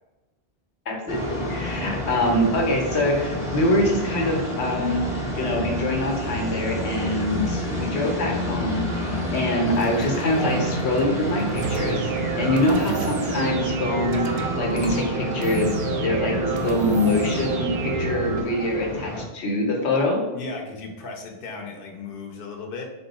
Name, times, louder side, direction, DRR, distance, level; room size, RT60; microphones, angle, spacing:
voice 1, 0.9-5.0 5.3-20.2, left 1 dB, 90° left, 0 dB, 1.2 m, -24 dB
sound 1, 1.1-19.2, equal, 5° right, 0.7 m, -30 dB
sound 2, 9.7-13.5 13.9-14.3 14.7-15.0, left 2 dB, 35° left, 0.5 m, -41 dB
sound 3, 11.6-18.4, right 4 dB, 60° right, 0.6 m, -28 dB
voice 2, 20.3-22.8, left 3 dB, 60° left, 2 dB, 0.9 m, -36 dB
4.2 x 2.3 x 4.0 m, 1.1 s
omnidirectional pair, 1.1 m